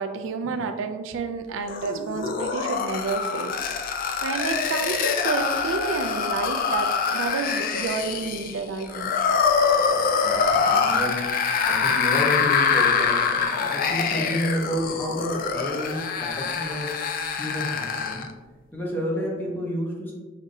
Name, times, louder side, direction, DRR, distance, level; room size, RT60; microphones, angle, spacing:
voice 1, 0.0-3.5 4.2-9.1, right 4 dB, 80° right, 7 dB, 0.3 m, -30 dB
sound 1, 1.7-18.3, left 5 dB, 45° left, 0.3 m, -25 dB
voice 2, 10.2-16.9 17.3-18.3 18.7-20.1, equal, 10° left, -3 dB, 0.8 m, -30 dB
5.1 x 2.7 x 2.6 m, 1.3 s
head